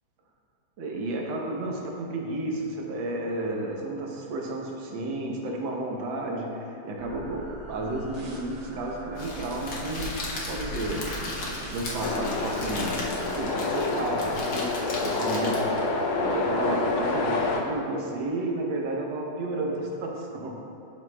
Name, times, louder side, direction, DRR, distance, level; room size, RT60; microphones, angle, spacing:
voice 1, 0.8-11.1 11.7-16.0 16.2-20.6, right 2 dB, 70° right, 0 dB, 1.5 m, -32 dB
sound 1, 7.0-13.4, right 2 dB, 90° right, 0.5 m, -43 dB
Crackle, 9.2-15.9, left 2 dB, 60° left, 1.4 m, -36 dB
sound 2, 12.0-17.6, left 3 dB, 80° left, 1.5 m, -28 dB
11.5 x 5.1 x 2.2 m, 2.8 s
omnidirectional pair, 2.3 m